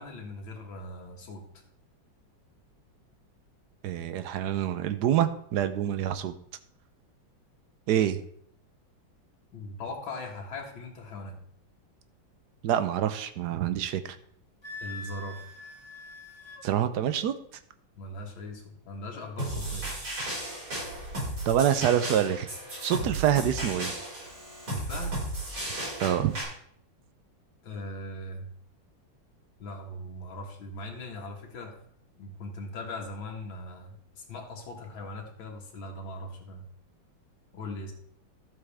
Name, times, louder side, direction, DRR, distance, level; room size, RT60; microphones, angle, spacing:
voice 1, 0.0-1.4 9.5-11.4 14.8-15.4 18.0-20.0 23.0-23.2 24.7-25.2 27.6-28.5 29.6-31.8 32.2-36.6 37.5-37.9, left 2 dB, 75° left, 1 dB, 2.4 m, -40 dB
voice 2, 3.8-6.3 7.9-8.2 12.6-14.1 16.6-17.3 21.5-22.5 22.8-23.9 26.0-26.3, right 10 dB, 65° right, 10 dB, 1.1 m, -26 dB
Wind instrument woodwind instrument, 14.6-16.6, left 2 dB, 30° left, 0.5 m, -43 dB
sound 1, 19.4-26.4, right 1 dB, 85° right, 5.9 m, -34 dB
12.5 x 7.9 x 3.4 m, 0.65 s
omnidirectional pair, 2.1 m